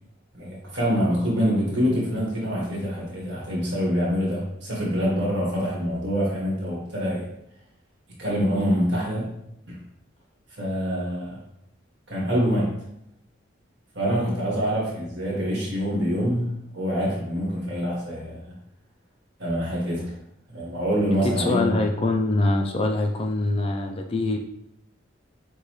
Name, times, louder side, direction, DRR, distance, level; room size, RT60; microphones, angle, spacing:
voice 1, 0.3-7.3 8.2-9.3 9.7-9.8 10.6-11.4 12.1-12.7 13.9-18.4 19.4-20.1 20.5-21.7, equal, 60° right, -4 dB, 1.7 m, -25 dB
voice 2, 21.4-24.4, left 2 dB, 30° left, 3 dB, 0.3 m, -24 dB
6.5 x 2.3 x 3.1 m, 0.78 s
head